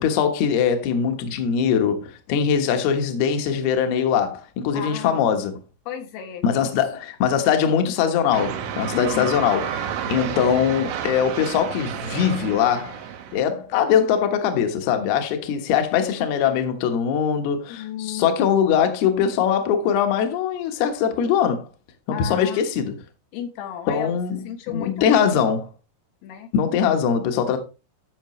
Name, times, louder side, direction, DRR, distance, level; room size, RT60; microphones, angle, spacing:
voice 1, 0.0-5.6 6.4-13.0 13.3-21.7 22.1-22.9 23.9-25.6 26.5-27.6, left 8 dB, 65° left, 2.8 m, -22 dB
voice 2, 4.7-5.4 5.9-6.7 8.9-9.4 17.7-18.3 22.1-22.6 23.3-24.1 24.4-25.3 26.2-26.5, left 9 dB, 85° left, 3.9 m, -33 dB
sound 1, 8.3-13.4, right 9 dB, 75° right, 3.3 m, -31 dB
13.5 x 6.2 x 3.2 m
omnidirectional pair, 5.7 m